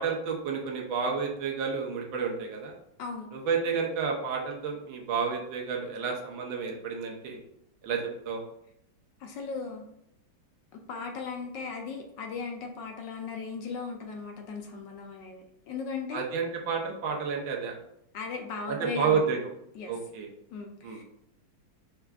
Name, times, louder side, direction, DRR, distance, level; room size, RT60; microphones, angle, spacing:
voice 1, 0.0-2.7 3.3-7.4 7.8-8.4 16.1-17.8 18.7-19.4 19.9-20.3 20.8-21.0, right 5 dB, 75° right, 0 dB, 1.6 m, -30 dB
voice 2, 9.2-9.8 10.9-16.3 18.1-19.3 19.7-19.9 20.5-21.0, left 4 dB, 75° left, 3 dB, 1.1 m, -37 dB
5.7 x 2.3 x 3.4 m, 0.77 s
omnidirectional pair, 2.2 m